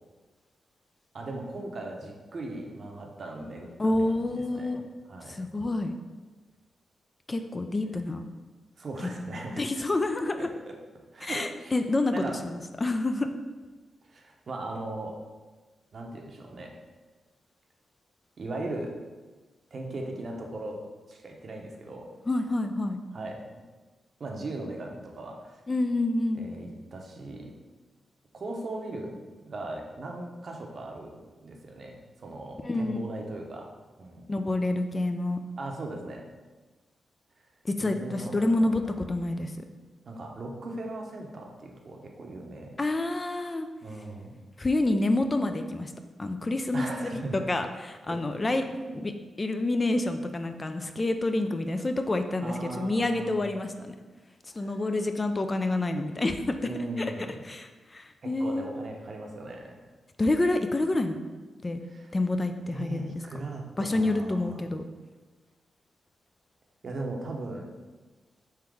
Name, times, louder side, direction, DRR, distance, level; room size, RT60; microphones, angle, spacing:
voice 1, 1.1-3.7 4.2-4.8 5.1-5.4 8.8-9.7 10.4-10.7 11.1-11.7 12.1-12.4 14.1-15.2 15.9-16.7 18.4-18.9 19.7-20.8 21.1-22.1 23.1-23.6 24.2-25.6 26.3-27.5 28.3-29.2 29.5-34.3 35.6-36.3 37.8-38.8 40.1-42.7 43.8-44.4 46.7-47.5 48.1-48.4 48.7-49.1 52.4-53.4 54.6-54.7 56.6-57.5 58.2-59.8 61.9-62.1 62.7-64.6 66.8-67.7, right 2 dB, 55° right, 1 dB, 0.7 m, -38 dB
voice 2, 3.8-4.8 5.3-5.9 7.3-8.2 9.5-10.5 11.2-13.3 22.3-23.0 25.7-26.5 32.6-33.0 34.3-35.4 37.6-39.6 42.8-43.7 44.6-45.9 46.2-48.6 49.0-49.1 49.4-53.9 54.5-56.6 57.0-57.1 57.5-58.7 60.2-61.2 61.6-61.8 62.1-63.1 63.8-64.8, left 2 dB, 30° left, 7 dB, 0.3 m, -28 dB
3.7 x 2.9 x 4.8 m, 1.3 s
cardioid pair, 70°, 0 cm